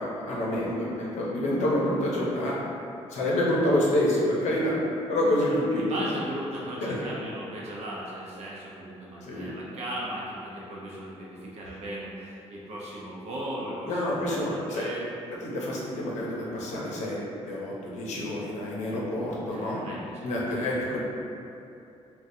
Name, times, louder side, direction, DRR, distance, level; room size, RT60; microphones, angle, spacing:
voice 1, 0.0-2.5 3.1-4.8 5.1-5.9 6.8-7.0 9.2-9.5 13.9-14.9 15.4-17.2 17.4-19.8 20.2-21.0, left 1 dB, 85° left, -4 dB, 0.7 m, -27 dB
voice 2, 5.4-15.1 19.5-20.7, right 1 dB, 70° right, -5 dB, 0.7 m, -37 dB
3.7 x 2.3 x 2.6 m, 2.7 s
cardioid pair, 160°, 12 cm